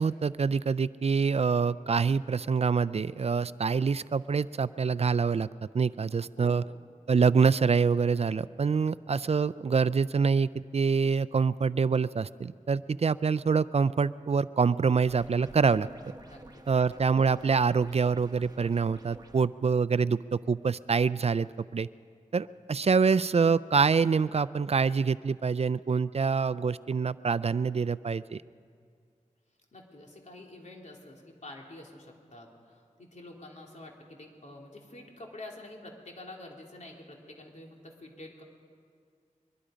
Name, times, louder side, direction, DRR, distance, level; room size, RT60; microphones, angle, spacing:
voice 1, 0.0-5.5 5.7-6.6 7.1-15.9 16.7-21.9 22.3-28.4, right 5 dB, 50° right, 17 dB, 0.4 m, -26 dB
voice 2, 6.4-6.7 16.2-16.6 29.7-38.4, left 1 dB, 65° left, 0 dB, 3.2 m, -47 dB
sound 1, 15.1-19.4, right 1 dB, 30° right, 1.4 m, -50 dB
23.0 x 22.5 x 5.1 m, 2.2 s
wide cardioid pair, 75°, 13 cm